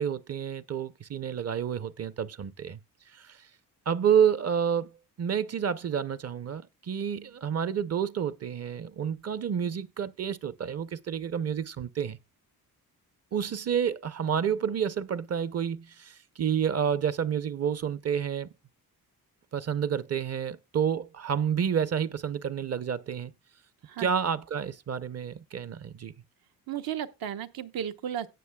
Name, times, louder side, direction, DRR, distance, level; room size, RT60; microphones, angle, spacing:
voice 1, 0.0-2.8 3.1-3.4 3.9-4.9 5.2-12.2 13.3-18.5 19.5-23.3 24.0-26.1, right 8 dB, 45° right, 0.6 m, -29 dB
voice 2, 26.7-28.3, right 9 dB, 75° right, 1.0 m, -34 dB
17.0 x 6.4 x 2.3 m
cardioid pair, 105°, 36 cm